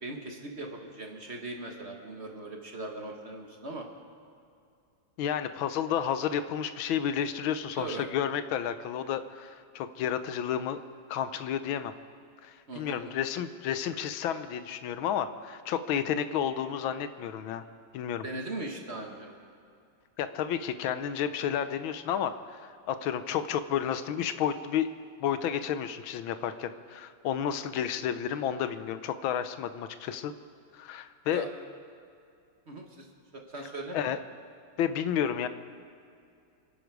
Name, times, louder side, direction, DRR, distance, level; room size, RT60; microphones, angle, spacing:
voice 1, 0.0-3.8 7.8-8.1 12.7-13.3 18.2-19.3 31.3-31.5 32.7-33.1 33.3-34.0, right 2 dB, 35° right, 1 dB, 1.5 m, -39 dB
voice 2, 5.2-10.8 11.1-11.9 12.4-17.6 17.9-18.2 20.2-24.9 25.2-30.3 30.7-31.4 33.9-34.2 34.8-35.5, left 9 dB, 80° left, 11 dB, 1.5 m, -31 dB
27.0 x 10.5 x 4.8 m, 2.5 s
omnidirectional pair, 2.2 m